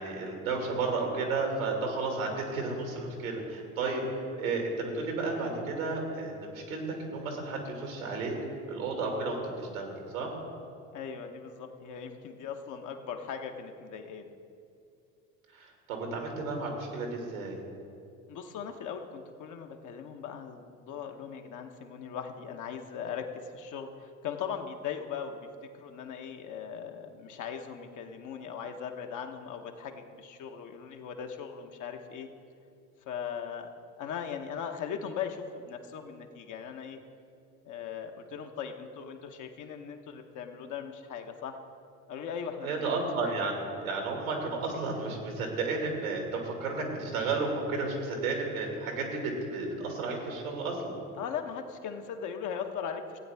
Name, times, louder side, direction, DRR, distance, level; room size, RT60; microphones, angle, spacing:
voice 1, 0.0-4.0 4.3-8.3 8.7-10.3 15.5-17.6 42.6-51.0, right 3 dB, 80° right, 1 dB, 2.3 m, -32 dB
voice 2, 10.9-14.3 18.3-25.4 25.7-32.3 33.1-33.7 34.0-37.0 37.6-41.6 42.1-43.3 51.2-53.2, left 7 dB, 45° left, 4 dB, 1.1 m, -39 dB
16.0 x 8.9 x 3.5 m, 2.5 s
hypercardioid pair, 65°, 41 cm